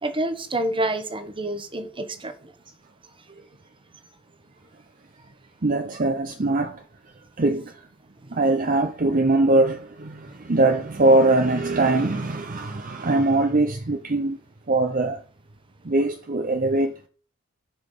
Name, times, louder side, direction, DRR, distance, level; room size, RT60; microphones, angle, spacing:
voice 1, 0.0-2.5, right 1 dB, 25° right, 1.3 m, -28 dB
voice 2, 5.6-6.8 7.4-7.8 8.3-14.4 14.7-15.2 15.8-16.9, right 2 dB, 40° right, 0.7 m, -21 dB
11.0 x 5.9 x 6.8 m
head